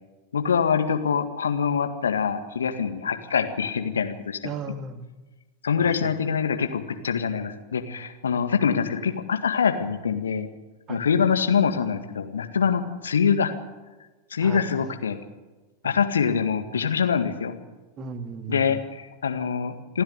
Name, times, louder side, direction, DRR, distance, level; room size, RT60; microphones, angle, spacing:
voice 1, 0.3-4.4 5.6-10.5 10.9-13.5 14.3-15.2 15.8-17.6 18.5-20.0, left 6 dB, 70° left, 7 dB, 1.8 m, -24 dB
voice 2, 4.4-5.1 5.8-6.1 10.9-11.0 14.4-14.9 15.8-16.0 18.0-18.8, right 5 dB, 30° right, 8 dB, 2.0 m, -36 dB
28.0 x 10.0 x 9.7 m, 1.2 s
figure-of-eight pair, 90°, 0 cm